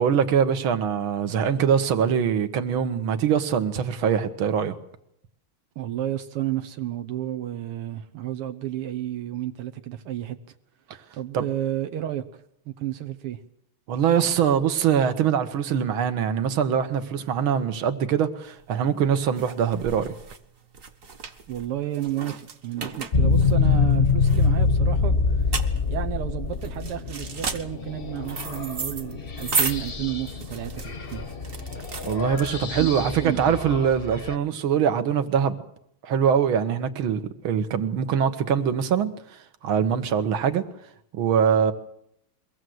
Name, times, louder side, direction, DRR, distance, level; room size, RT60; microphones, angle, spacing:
voice 1, 0.0-4.8 11.3-11.4 13.9-20.1 32.0-35.6 36.0-39.1 39.6-40.6 41.1-41.7, right 8 dB, 70° right, 2.1 m, -23 dB
voice 2, 5.8-10.6 11.1-13.4 21.5-25.6 25.9-31.3 32.8-33.6, right 12 dB, 85° right, 2.0 m, -32 dB
sound 1, 18.5-32.9, right 4 dB, 40° right, 1.5 m, -34 dB
sound 2, 23.1-34.3, left 4 dB, 35° left, 0.9 m, -25 dB
23.0 x 17.5 x 7.8 m
omnidirectional pair, 2.4 m